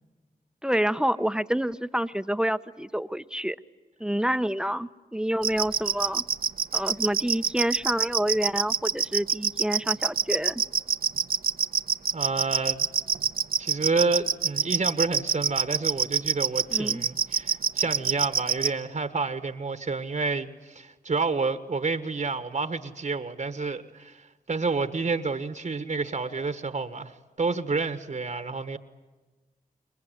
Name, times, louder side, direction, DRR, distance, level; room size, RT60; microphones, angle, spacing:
voice 1, 0.6-3.6 4.0-6.2 6.7-10.6 16.7-17.0, right 1 dB, 5° right, 0.8 m, -28 dB
sound 1, 5.4-18.7, right 6 dB, 75° right, 1.0 m, -24 dB
voice 2, 12.1-12.9 13.6-28.8, right 4 dB, 55° right, 1.4 m, -29 dB
27.5 x 22.5 x 9.4 m
wide cardioid pair, 70°, 15 cm